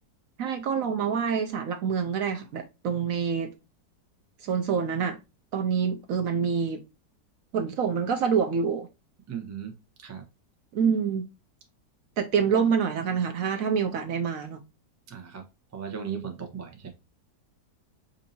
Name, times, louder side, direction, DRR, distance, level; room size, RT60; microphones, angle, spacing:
voice 1, 0.4-3.5 4.4-5.2 5.5-6.8 7.5-8.9 10.7-11.2 12.2-14.6, right 6 dB, 65° right, 0.9 m, -26 dB
voice 2, 9.3-9.7 10.0-10.2 15.1-15.4 15.7-16.9, right 7 dB, 25° right, 0.3 m, -36 dB
5.3 x 2.7 x 2.7 m
omnidirectional pair, 1.8 m